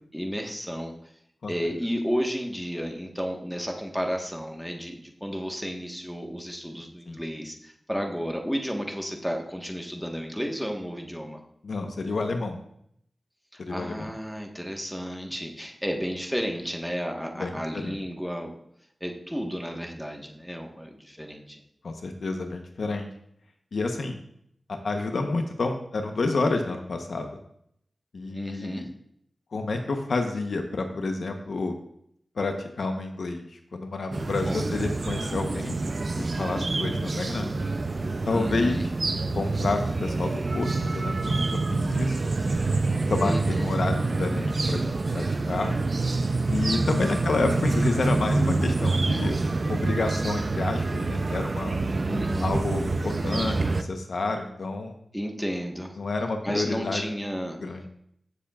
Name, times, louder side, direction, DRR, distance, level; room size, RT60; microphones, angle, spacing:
voice 1, 0.1-0.9 1.5-11.4 13.5-18.5 19.0-21.6 28.3-28.9 34.4-34.7 38.3-38.9 43.2-43.7 47.1-47.3 52.1-52.5 55.1-56.0 56.4-57.6, equal, ahead, 2 dB, 1.4 m, -32 dB
voice 2, 11.6-12.6 13.6-14.1 17.4-18.0 21.8-23.1 23.7-24.2 24.8-27.4 28.1-28.9 29.5-31.8 32.4-35.8 36.2-37.5 38.3-38.8 39.1-42.3 42.9-45.7 46.5-49.4 49.7-51.8 52.4-54.9 56.0-57.0 57.6-57.9, left 3 dB, 80° left, 4 dB, 1.0 m, -29 dB
sound 1, 34.1-53.8, right 3 dB, 50° right, 0.5 m, -27 dB
15.0 x 7.1 x 2.4 m, 0.70 s
wide cardioid pair, 70°, 0 cm